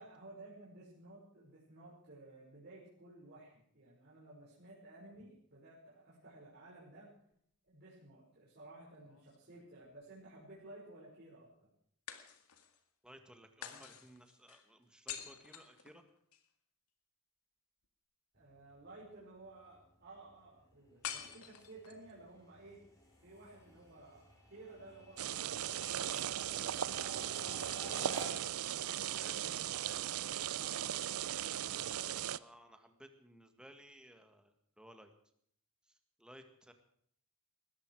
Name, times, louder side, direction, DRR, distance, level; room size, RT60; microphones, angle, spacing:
voice 1, 0.0-7.1 7.6-11.7 18.3-22.8 23.2-26.1 26.4-28.6 29.0-29.6 30.5-31.0 31.6-32.1, right 2 dB, 50° right, -7 dB, 5.5 m, -55 dB
sound 1, 9.0-10.0 12.1-12.8 13.6-16.5 21.0-22.1, left 9 dB, 85° left, 1.9 m, -48 dB
voice 2, 13.0-16.0 29.2-29.4 29.8-30.4 32.3-35.1 35.9-36.7, equal, 5° right, 6 dB, 1.8 m, -58 dB
sound 2, 18.4-28.6, left 1 dB, 15° left, 4.2 m, -55 dB
sound 3, 25.2-32.4, right 10 dB, 75° right, 0.5 m, -38 dB
20.5 x 14.0 x 4.8 m, 0.66 s
head